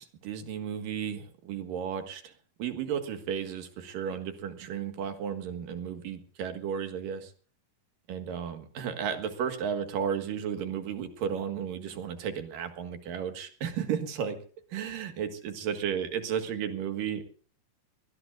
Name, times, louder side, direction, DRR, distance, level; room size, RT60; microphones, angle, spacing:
voice 1, 0.0-2.3 2.6-7.3 8.1-14.4 14.7-17.3, right 8 dB, 70° right, 7 dB, 3.3 m, -33 dB
23.0 x 20.0 x 2.5 m, 0.42 s
omnidirectional pair, 4.1 m